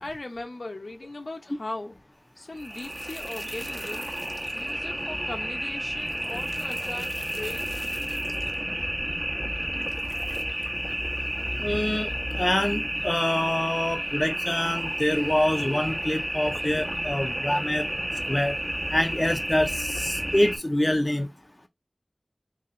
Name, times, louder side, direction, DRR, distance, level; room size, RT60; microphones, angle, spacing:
voice 1, 0.0-2.0 2.4-4.2 4.5-7.1 7.4-7.7, left 2 dB, 85° left, 0.8 m, -38 dB
sound 1, 2.6-20.6, equal, 30° right, 0.9 m, -31 dB
voice 2, 11.6-12.1 12.4-17.9 18.3-18.5 18.9-21.3, left 1 dB, 30° left, 0.5 m, -25 dB
3.9 x 2.8 x 2.6 m
wide cardioid pair, 50°, 0 cm